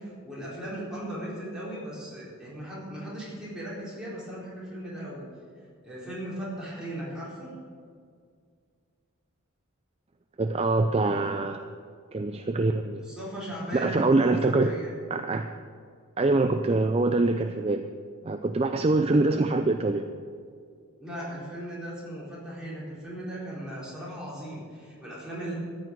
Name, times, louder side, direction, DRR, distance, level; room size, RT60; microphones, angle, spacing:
voice 1, 0.0-5.3 5.5-7.5 13.0-14.9 21.0-25.5, right 1 dB, 5° right, -8 dB, 4.2 m, -37 dB
voice 2, 10.4-11.6 12.1-13.0 13.7-14.7 15.1-15.5 16.2-17.8 18.2-20.1, right 2 dB, 25° right, 7 dB, 0.4 m, -24 dB
14.0 x 6.4 x 9.0 m, 2.1 s
head